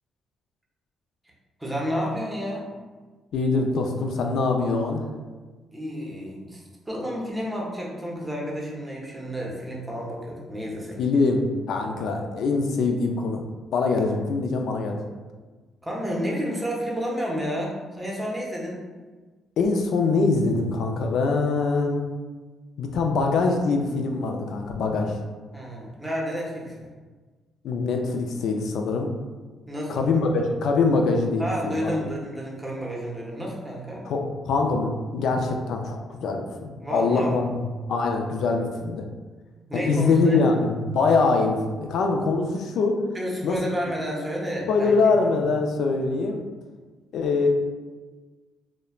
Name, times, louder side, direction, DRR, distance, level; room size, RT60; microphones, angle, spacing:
voice 1, 1.6-2.7 5.7-11.0 15.8-18.8 25.5-26.9 29.7-30.1 31.4-34.0 36.8-37.4 39.7-40.4 43.1-44.9, equal, 10° right, -3 dB, 0.7 m, -30 dB
voice 2, 3.3-5.1 11.0-13.4 13.7-15.0 19.6-22.0 22.8-25.2 27.6-29.2 29.9-31.9 34.1-37.4 37.9-39.0 39.7-43.0 43.4-43.6 44.7-46.4 47.1-47.5, left 3 dB, 75° left, 3 dB, 0.3 m, -23 dB
3.0 x 2.0 x 2.3 m, 1.3 s
cardioid pair, 90°, 0 cm